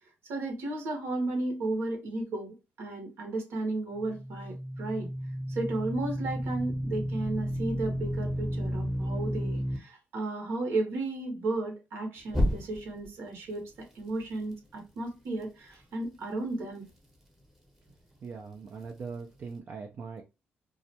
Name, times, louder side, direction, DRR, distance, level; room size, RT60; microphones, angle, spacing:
voice 1, 0.2-5.1 5.5-16.9, right 2 dB, 75° right, 2 dB, 0.9 m, -34 dB
sound 1, 4.0-9.8 12.3-13.1, equal, 5° right, 0.8 m, -32 dB
voice 2, 18.2-20.2, right 5 dB, 45° right, 2 dB, 0.4 m, -41 dB
2.3 x 2.1 x 2.7 m, 0.28 s
cardioid pair, 110°, 4 cm